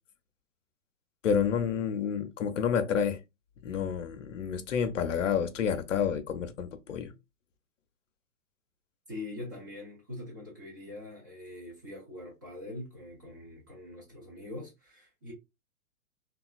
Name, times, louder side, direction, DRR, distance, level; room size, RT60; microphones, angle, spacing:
voice 1, 1.2-3.2 3.6-7.1, left 7 dB, 60° left, 0.6 m, -29 dB
voice 2, 9.1-15.3, left 2 dB, 15° right, 0.4 m, -43 dB
2.9 x 2.3 x 2.3 m
figure-of-eight pair, 110°, 44 cm